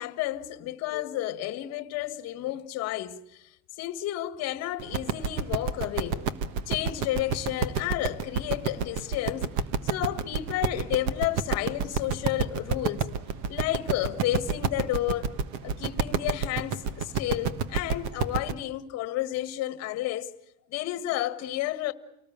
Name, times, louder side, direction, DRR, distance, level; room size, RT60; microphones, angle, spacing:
voice 1, 0.0-3.2 3.8-6.3 6.7-9.5 9.8-13.1 13.5-15.3 15.6-20.3 20.7-21.9, left 14 dB, 35° left, 1.6 m, -31 dB
sound 1, 4.8-18.5, right 6 dB, 40° right, 1.4 m, -29 dB
29.5 x 19.0 x 8.8 m
supercardioid pair, 170°, 43 cm